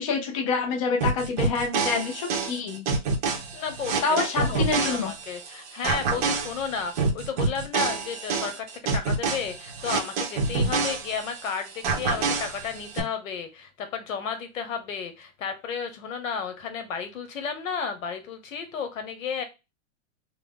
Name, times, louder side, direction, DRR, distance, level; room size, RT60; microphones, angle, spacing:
voice 1, 0.0-2.8 4.0-5.1, left 4 dB, 25° left, 2 dB, 0.4 m, -27 dB
sound 1, 1.0-5.5 5.8-11.5 11.8-13.0, right 4 dB, 30° right, 0.6 m, -27 dB
voice 2, 3.5-4.0 4.4-8.7 8.9-19.4, left 6 dB, 85° left, 8 dB, 1.1 m, -33 dB
3.4 x 2.0 x 3.5 m, 0.25 s
supercardioid pair, 165°, 39 cm